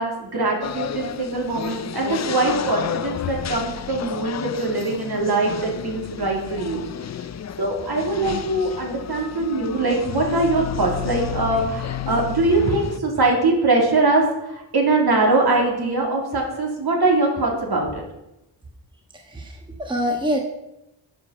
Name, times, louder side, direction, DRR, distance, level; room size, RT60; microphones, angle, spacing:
voice 1, 0.0-6.8 7.6-18.0, right 2 dB, 55° right, 0 dB, 2.6 m, -22 dB
sound 1, 0.6-13.0, left 9 dB, 40° left, 0.4 m, -31 dB
voice 2, 19.3-20.4, equal, 10° right, 1 dB, 1.3 m, -25 dB
11.0 x 5.2 x 5.6 m, 0.92 s
wide cardioid pair, 110°, 45 cm